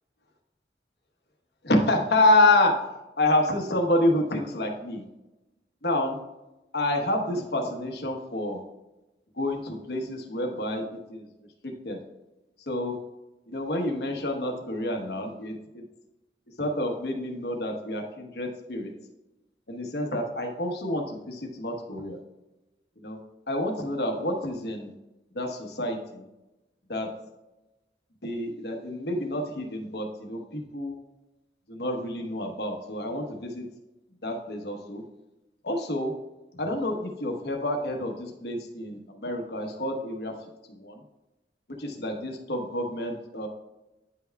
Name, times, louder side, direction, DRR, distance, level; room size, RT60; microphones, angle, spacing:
voice 1, 1.6-2.8 3.2-5.0 5.8-6.2 6.7-8.6 9.4-11.3 11.6-12.0 12.7-13.0 13.5-15.8 16.6-18.9 19.7-22.2 23.0-23.2 23.5-24.9 25.3-26.3 26.9-27.1 28.2-31.0 31.7-33.7 34.2-35.0 35.6-36.1 36.5-40.4 40.8-41.0 41.7-43.5, left 1 dB, 65° left, 2 dB, 1.1 m, -28 dB
9.6 x 5.7 x 2.3 m, 1.0 s
head